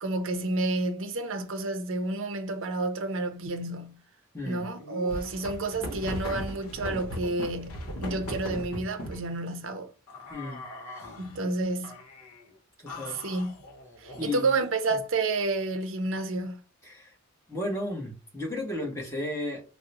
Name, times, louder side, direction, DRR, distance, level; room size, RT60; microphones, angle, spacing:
voice 1, 0.0-4.0 4.4-9.9 11.2-12.0 13.2-13.5 14.0-16.6, right 2 dB, 60° right, 0.6 m, -30 dB
voice 2, 4.3-4.7 10.3-10.6 10.9-11.1 12.8-13.2 14.2-14.5 16.8-17.1 17.5-19.6, left 1 dB, 10° left, 0.9 m, -34 dB
sound 1, 4.8-9.3 10.1-11.4 11.8-12.4 12.9-14.7, left 1 dB, 80° left, 0.8 m, -38 dB
3.6 x 2.1 x 2.7 m
head